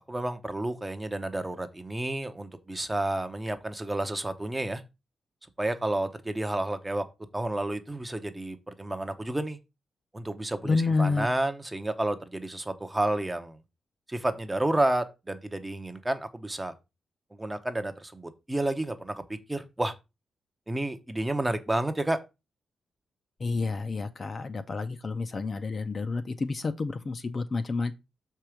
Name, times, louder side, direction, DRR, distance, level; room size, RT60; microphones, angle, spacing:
voice 1, 0.1-4.8 5.6-7.0 7.3-9.6 10.1-13.6 14.1-16.7 17.3-19.2 19.5-19.9 20.7-22.2, right 1 dB, 10° right, 0.7 m, -30 dB
voice 2, 10.6-11.3 23.4-28.0, left 3 dB, 30° left, 0.6 m, -29 dB
6.6 x 4.6 x 5.0 m
wide cardioid pair, 155°, 0 cm